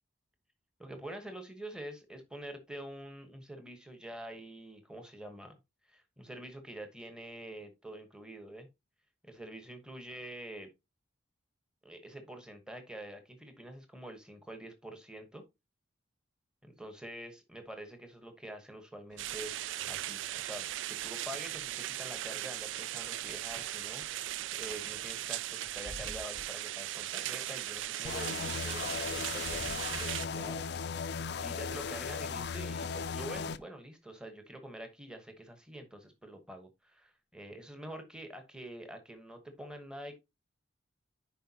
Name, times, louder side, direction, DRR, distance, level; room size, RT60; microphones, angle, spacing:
voice 1, 0.8-5.5 5.8-8.7 9.2-10.7 11.8-15.4 16.6-40.2, right 1 dB, 5° right, 1.1 m, -46 dB
sound 1, 19.1-30.5, equal, 20° right, 1.6 m, -54 dB
sound 2, 19.2-30.3, right 14 dB, 70° right, 0.3 m, -38 dB
sound 3, 28.0-33.6, left 5 dB, 55° left, 0.4 m, -37 dB
10.0 x 4.5 x 2.8 m
head